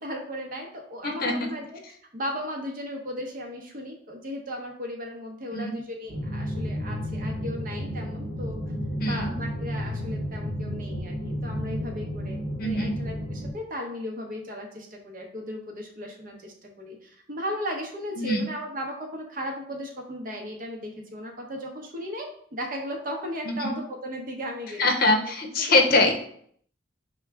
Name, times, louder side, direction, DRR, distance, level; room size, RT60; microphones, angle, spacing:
voice 1, 0.0-1.8 2.1-8.6 9.0-25.1 25.6-26.1, equal, 50° right, 1 dB, 0.8 m, -36 dB
voice 2, 1.0-1.3 5.5-5.7 9.0-9.3 12.6-12.9 18.2-18.4 23.4-23.7 24.8-26.1, left 2 dB, 50° left, 4 dB, 0.7 m, -23 dB
sound 1, 6.1-13.5, equal, 90° right, 0.9 m, -32 dB
6.0 x 2.2 x 3.5 m, 0.63 s
head